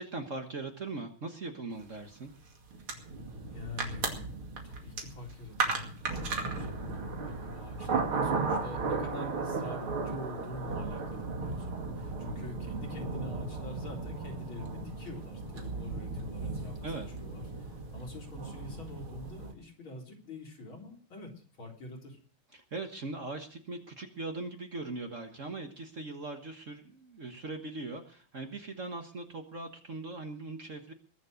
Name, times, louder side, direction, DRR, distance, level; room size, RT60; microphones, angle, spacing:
voice 1, 0.0-2.3 16.8-17.1 22.5-30.9, right 3 dB, 40° right, 5 dB, 1.5 m, -40 dB
sound 1, 2.4-2.5 2.7-19.5, right 4 dB, 80° right, 3.3 m, -35 dB
voice 2, 3.5-4.4 4.6-16.9 17.2-21.3 21.6-22.2, left 2 dB, 70° left, 0 dB, 4.6 m, -45 dB
21.5 x 7.4 x 6.5 m, 0.43 s
omnidirectional pair, 2.3 m